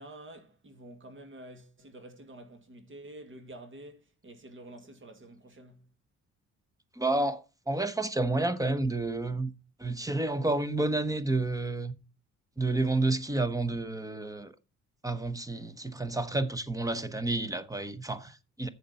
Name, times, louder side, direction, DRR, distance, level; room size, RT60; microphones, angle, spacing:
voice 1, 0.0-5.9, right 1 dB, 40° right, 1.9 m, -49 dB
voice 2, 7.0-9.5 9.8-11.9 12.6-14.5 15.0-18.7, right 2 dB, 10° right, 1.0 m, -30 dB
7.3 x 7.0 x 5.4 m
cardioid pair, 90°, 30 cm